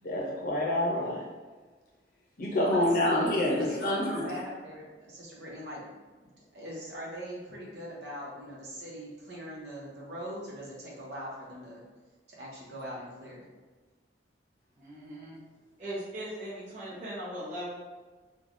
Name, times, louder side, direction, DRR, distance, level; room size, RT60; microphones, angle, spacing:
voice 1, 0.0-1.3 2.4-4.3, left 1 dB, 50° left, -2 dB, 0.6 m, -27 dB
voice 2, 2.6-5.9 6.2-11.8 12.3-13.5, equal, 70° right, -4 dB, 0.8 m, -42 dB
voice 3, 14.8-15.4 15.8-17.8, right 1 dB, 45° right, -9 dB, 0.8 m, -39 dB
3.2 x 2.2 x 2.5 m, 1.3 s
head